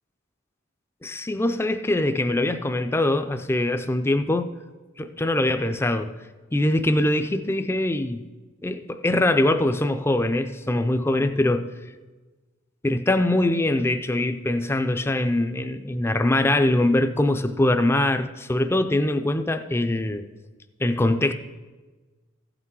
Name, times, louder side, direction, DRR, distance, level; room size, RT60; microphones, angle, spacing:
voice 1, 1.0-4.5 5.0-6.1 6.5-8.3 8.6-11.7 12.8-20.3 20.8-21.3, left 1 dB, 10° left, 0.4 m, -23 dB
15.0 x 6.0 x 4.7 m
head